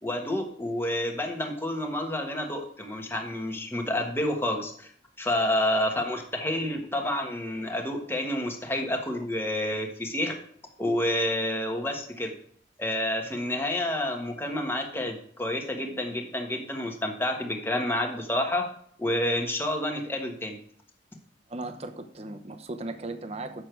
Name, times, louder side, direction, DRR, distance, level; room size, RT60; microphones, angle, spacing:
voice 1, 0.0-4.9 5.2-10.3 10.8-12.3 12.8-18.7 19.0-20.5, left 1 dB, 10° left, 2 dB, 1.3 m, -29 dB
voice 2, 21.5-23.6, right 2 dB, 35° right, 7 dB, 0.8 m, -37 dB
8.5 x 6.5 x 4.5 m, 0.63 s
head